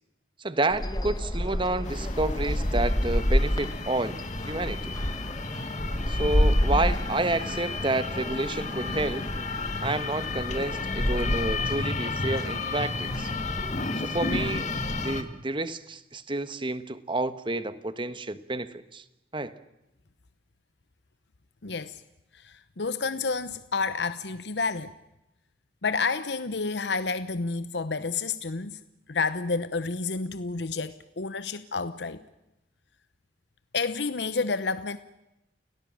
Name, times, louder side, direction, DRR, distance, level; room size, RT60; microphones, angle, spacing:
voice 1, 0.4-4.2 4.5-5.0 6.1-9.3 9.8-13.3 14.0-14.7 15.0-19.0 19.3-19.5, right 2 dB, 30° right, 1.2 m, -30 dB
sound 1, 0.7-15.2, equal, 20° left, 1.2 m, -30 dB
sound 2, 1.8-15.2, left 3 dB, 40° left, 1.8 m, -33 dB
voice 2, 21.6-22.0 22.3-24.9 25.8-28.8 29.1-32.2 33.7-35.0, left 4 dB, 70° left, 0.9 m, -30 dB
29.5 x 18.0 x 7.6 m
head